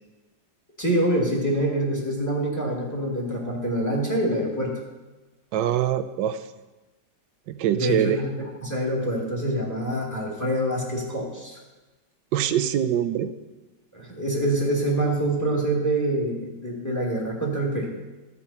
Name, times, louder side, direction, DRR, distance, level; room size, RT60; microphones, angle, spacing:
voice 1, 0.8-4.7 7.7-11.6 13.9-17.9, right 1 dB, 10° left, -2 dB, 2.3 m, -25 dB
voice 2, 5.5-6.4 7.5-8.2 12.3-13.3, right 10 dB, 80° right, 12 dB, 1.3 m, -23 dB
14.0 x 8.5 x 4.3 m, 1.1 s
omnidirectional pair, 2.0 m